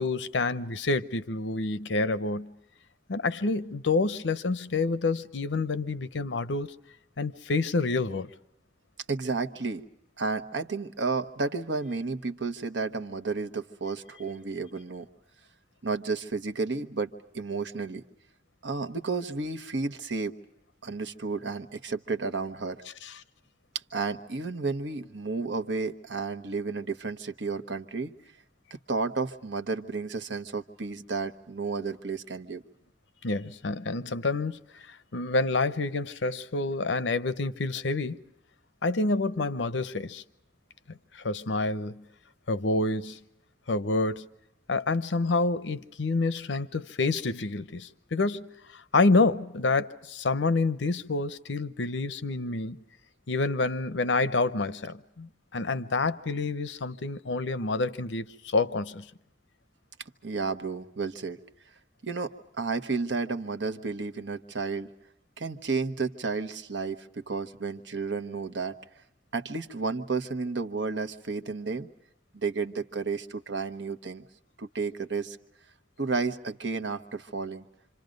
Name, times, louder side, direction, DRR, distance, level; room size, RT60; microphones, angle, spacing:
voice 1, 0.0-2.5 3.1-6.7 7.2-8.3 23.0-23.2 33.2-34.6 34.9-38.2 38.8-40.2 40.9-42.0 42.5-43.2 43.7-44.3 44.7-48.5 48.7-52.8 53.3-59.0, left 3 dB, 90° left, 0.8 m, -28 dB
voice 2, 9.1-9.8 10.2-15.1 15.8-18.0 18.6-20.3 20.8-22.8 23.9-28.1 28.7-32.6 60.2-61.4 62.0-64.9 65.4-68.8 69.3-71.9 72.3-74.2 74.6-75.4 76.0-77.6, right 4 dB, 85° right, 1.1 m, -32 dB
27.0 x 26.5 x 5.2 m
head